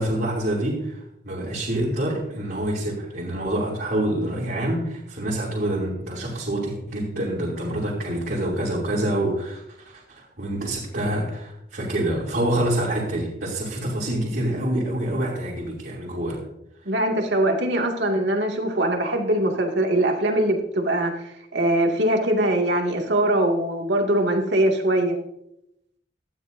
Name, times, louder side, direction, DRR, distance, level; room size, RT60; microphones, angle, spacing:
voice 1, 0.0-16.4, right 1 dB, 55° right, -5 dB, 3.0 m, -26 dB
voice 2, 16.9-21.1 21.5-25.1, right 1 dB, 75° right, 2 dB, 2.2 m, -22 dB
17.0 x 12.5 x 2.7 m, 0.81 s
head